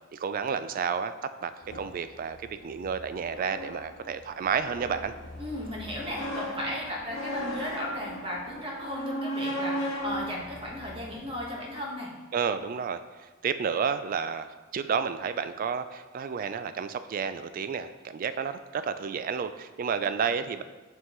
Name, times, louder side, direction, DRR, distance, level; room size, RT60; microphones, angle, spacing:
voice 1, 0.1-2.4 2.6-5.1 12.3-20.6, right 6 dB, 45° right, 11 dB, 0.3 m, -31 dB
sound 1, 1.6-11.6, equal, 75° left, 1.1 m, -37 dB
voice 2, 5.4-12.1, equal, 30° right, -3 dB, 1.3 m, -35 dB
9.0 x 3.7 x 3.0 m, 1.3 s
head